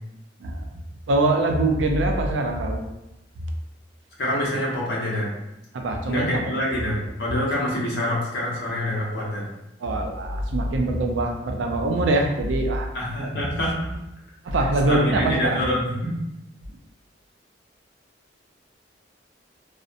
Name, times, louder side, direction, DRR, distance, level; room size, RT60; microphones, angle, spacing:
voice 1, 1.1-2.8 5.7-6.4 9.8-12.9 14.5-15.6, right 2 dB, 80° right, 3 dB, 0.4 m, -23 dB
voice 2, 4.2-5.3 6.1-9.5 12.9-13.9 14.5-16.2, left 1 dB, 65° left, -5 dB, 0.8 m, -26 dB
2.7 x 2.1 x 2.4 m, 0.91 s
head